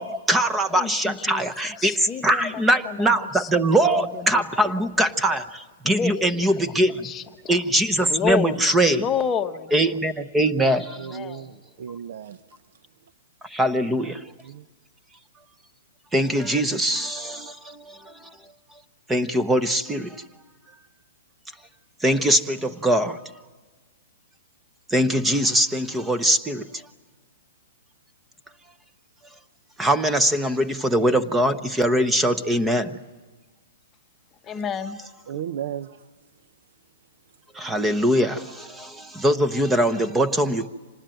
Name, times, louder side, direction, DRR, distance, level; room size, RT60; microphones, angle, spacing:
voice 1, 0.0-7.1 7.5-9.0 9.7-11.2 13.4-14.2 16.1-18.3 19.1-20.2 22.0-23.2 24.9-26.7 29.8-32.9 37.5-40.7, right 1 dB, 5° right, 0.9 m, -22 dB
voice 2, 0.7-1.5 1.8-5.2 5.8-7.6 8.1-10.0 10.9-11.5 34.4-35.0, left 6 dB, 20° left, 1.0 m, -31 dB
voice 3, 10.6-12.6 14.4-14.7 35.3-36.1, right 9 dB, 60° right, 0.8 m, -35 dB
26.0 x 19.5 x 9.1 m
hypercardioid pair, 160°, 0 cm